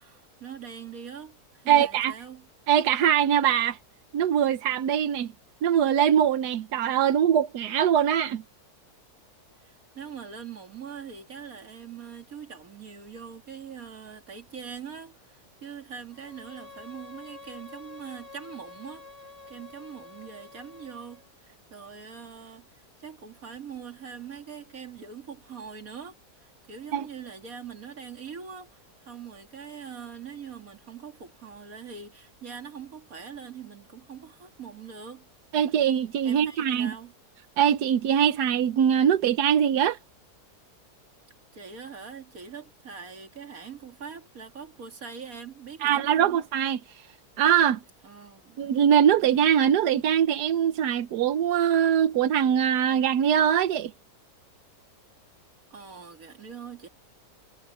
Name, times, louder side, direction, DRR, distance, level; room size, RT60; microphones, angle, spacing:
voice 1, 0.0-2.5 9.6-19.1 19.5-22.7 23.0-35.3 36.2-37.1 41.5-46.4 48.0-48.7 55.7-56.9, right 6 dB, 60° right, 2.8 m, -42 dB
voice 2, 1.7-2.1 2.7-3.8 4.1-5.3 5.6-8.4 26.9-27.0 35.5-36.9 37.6-40.0 45.8-46.8 47.4-47.8 48.6-53.9, right 9 dB, 90° right, 1.4 m, -22 dB
Bowed string instrument, 16.1-21.3, left 3 dB, 30° right, 4.5 m, -48 dB
omnidirectional pair, 1.7 m